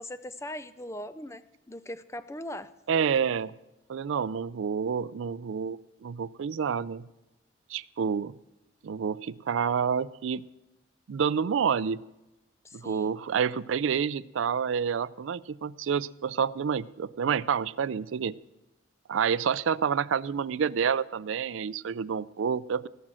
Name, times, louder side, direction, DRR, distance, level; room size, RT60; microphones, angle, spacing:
voice 1, 0.0-1.4 1.7-2.7 12.6-13.2, left 1 dB, 15° left, 13 dB, 0.4 m, -39 dB
voice 2, 2.9-3.5 3.9-7.0 7.7-8.3 8.8-10.4 11.1-12.0 12.7-18.3 19.1-22.9, right 7 dB, 75° right, 18 dB, 0.4 m, -28 dB
17.5 x 6.1 x 7.6 m, 0.97 s
head